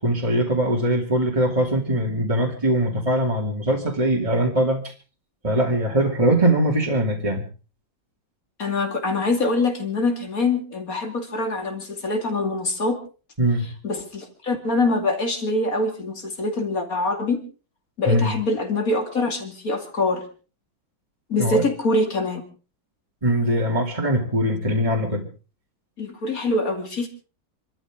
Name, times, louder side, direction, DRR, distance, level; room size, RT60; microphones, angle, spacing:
voice 1, 0.0-4.9 5.4-7.4 13.4-13.7 18.0-18.3 21.4-21.6 23.2-25.3, right 1 dB, 15° right, -2 dB, 2.6 m, -21 dB
voice 2, 8.6-13.0 13.8-17.4 18.0-20.3 21.3-22.5 26.0-27.1, left 2 dB, 45° left, 5 dB, 2.9 m, -24 dB
27.5 x 13.0 x 3.7 m, 0.35 s
omnidirectional pair, 2.2 m